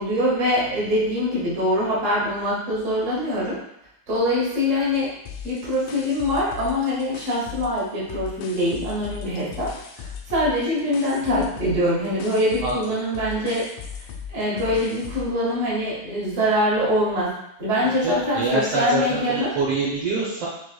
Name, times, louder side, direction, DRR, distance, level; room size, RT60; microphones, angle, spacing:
voice 1, 0.0-3.6 4.1-5.1 5.4-9.7 10.0-13.7 14.0-17.3 17.6-19.5, left 1 dB, 45° right, -7 dB, 1.0 m, -23 dB
sound 1, 5.3-7.8 8.1-15.3, left 7 dB, 80° left, 2.0 m, -38 dB
voice 2, 18.0-20.5, right 3 dB, 85° right, -6 dB, 1.3 m, -25 dB
6.4 x 3.1 x 2.2 m, 0.77 s
omnidirectional pair, 3.7 m